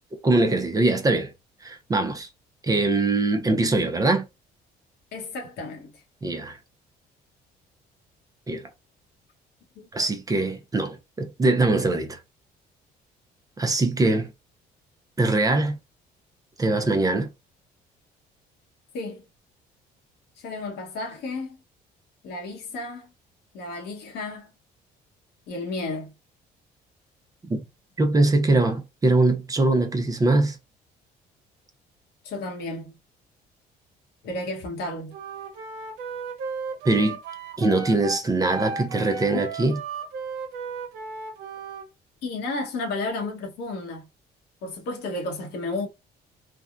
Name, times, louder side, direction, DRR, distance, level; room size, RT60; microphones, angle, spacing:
voice 1, 0.2-1.3 1.6-2.3 2.6-4.3 6.2-6.6 8.5-8.6 9.9-12.2 13.6-14.3 15.2-15.8 16.6-17.3 27.5-27.6 28.0-30.6 36.8-37.2 37.6-39.8, right 2 dB, 20° right, 0.6 m, -22 dB
voice 2, 5.1-5.9 9.7-9.9 18.9-19.2 20.4-21.6 22.2-23.1 23.5-24.5 25.5-26.1 32.2-33.0 34.2-35.1 42.2-44.0 44.6-45.9, left 2 dB, 80° left, 1.2 m, -32 dB
Wind instrument woodwind instrument, 35.1-41.9, right 4 dB, 85° right, 0.7 m, -35 dB
3.4 x 2.2 x 2.5 m
cardioid pair, 110°, 17 cm